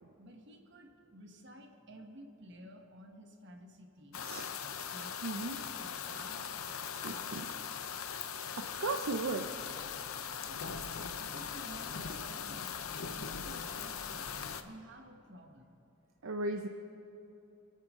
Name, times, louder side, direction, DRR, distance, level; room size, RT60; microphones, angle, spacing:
voice 1, 0.2-4.3 4.9-7.5 10.4-15.8, right 1 dB, 55° right, 3 dB, 1.4 m, -53 dB
sound 1, 4.1-14.6, left 7 dB, 85° left, 0.7 m, -40 dB
voice 2, 5.2-5.6 7.0-7.5 8.6-9.4 16.2-16.7, right 3 dB, 70° right, 4 dB, 0.6 m, -36 dB
27.0 x 9.1 x 3.7 m, 2.9 s
head